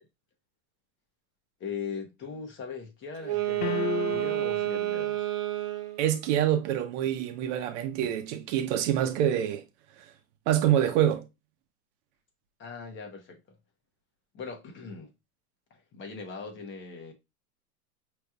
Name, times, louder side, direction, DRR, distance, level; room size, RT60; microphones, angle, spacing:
voice 1, 1.6-5.3 12.6-13.6 14.3-15.1 15.7-17.1, left 5 dB, 25° left, 1.0 m, -40 dB
Wind instrument woodwind instrument, 3.2-6.1, right 15 dB, 85° right, 0.9 m, -30 dB
sound 1, 3.6-4.7, left 11 dB, 65° left, 0.5 m, -33 dB
voice 2, 6.0-9.6 10.5-11.3, right 11 dB, 50° right, 0.9 m, -26 dB
5.2 x 3.1 x 2.4 m
supercardioid pair, 130°, 45 cm